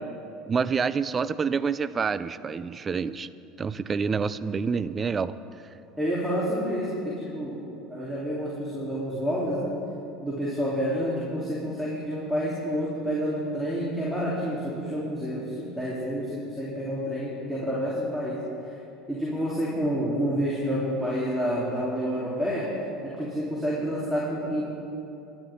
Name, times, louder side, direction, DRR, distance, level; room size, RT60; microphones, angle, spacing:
voice 1, 0.5-3.3 3.6-5.4, right 5 dB, 30° right, 15 dB, 0.5 m, -27 dB
voice 2, 6.0-7.6 7.9-9.7 10.2-18.4 19.1-22.7 23.0-24.7, equal, ahead, -7 dB, 3.7 m, -29 dB
23.5 x 12.0 x 3.8 m, 2.8 s
hypercardioid pair, 90°, 0 cm